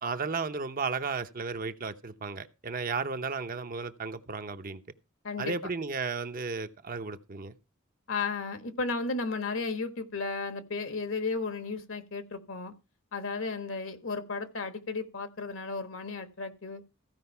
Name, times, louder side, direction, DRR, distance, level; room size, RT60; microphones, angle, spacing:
voice 1, 0.0-4.8 5.4-7.5, right 4 dB, 40° right, 0.8 m, -34 dB
voice 2, 8.1-12.7 13.1-16.8, left 4 dB, 70° left, 1.5 m, -34 dB
15.0 x 5.1 x 5.6 m
head